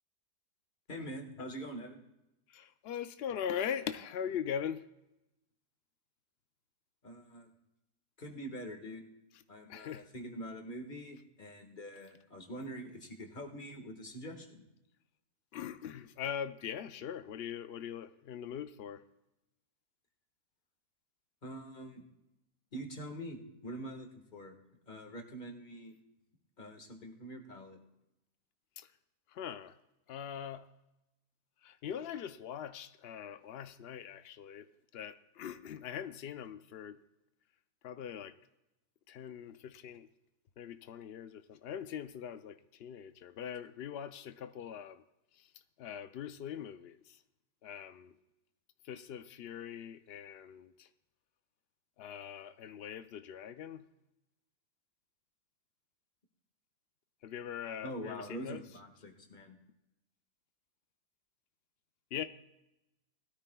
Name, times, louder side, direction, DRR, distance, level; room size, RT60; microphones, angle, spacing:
voice 1, 0.9-2.0 7.0-7.5 8.2-9.1 9.5-14.7 21.4-22.0 22.7-24.5 24.9-25.9 26.6-27.8 57.8-59.6, right 1 dB, 30° left, 1.7 m, -45 dB
voice 2, 2.5-4.8 9.7-10.1 15.5-19.0 28.8-28.9 29.3-29.8 30.1-30.7 31.6-37.0 37.8-38.3 39.1-40.1 40.6-45.0 45.3-45.5 45.8-47.2 47.6-48.1 48.8-50.9 52.0-53.8 57.2-58.6 62.1-62.2, left 8 dB, 80° left, 0.5 m, -41 dB
20.0 x 13.0 x 2.3 m
omnidirectional pair, 1.7 m